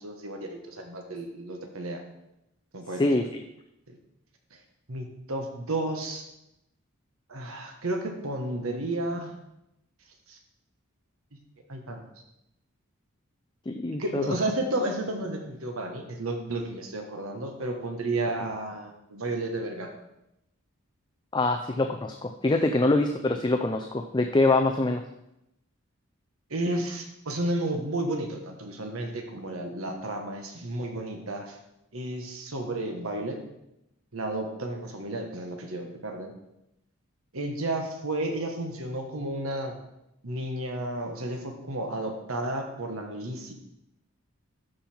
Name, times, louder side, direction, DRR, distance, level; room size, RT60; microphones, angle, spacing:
voice 1, 0.0-2.0 2.7-3.1 3.9-4.0 4.9-6.2 7.3-9.3 10.3-10.4 11.7-12.0 14.0-19.9 26.5-31.6 31.9-33.4 34.1-36.3 37.3-39.8 40.2-43.5, right 1 dB, 75° right, 3 dB, 1.3 m, -32 dB
voice 2, 3.0-3.3 13.7-14.2 21.3-25.0, left 2 dB, 20° left, 5 dB, 0.4 m, -24 dB
13.0 x 5.6 x 4.4 m, 0.86 s
head